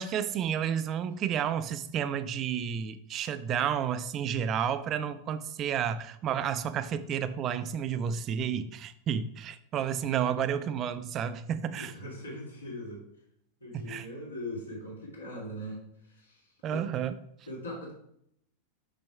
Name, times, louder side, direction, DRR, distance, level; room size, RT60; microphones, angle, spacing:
voice 1, 0.0-11.9 13.7-14.1 16.6-17.2, right 8 dB, 30° right, 13 dB, 0.4 m, -31 dB
voice 2, 11.7-13.0 13.6-16.4 16.7-16.8 17.5-17.9, equal, 80° left, -5 dB, 2.6 m, -40 dB
6.1 x 5.8 x 3.4 m, 0.72 s
figure-of-eight pair, 90°, 0 cm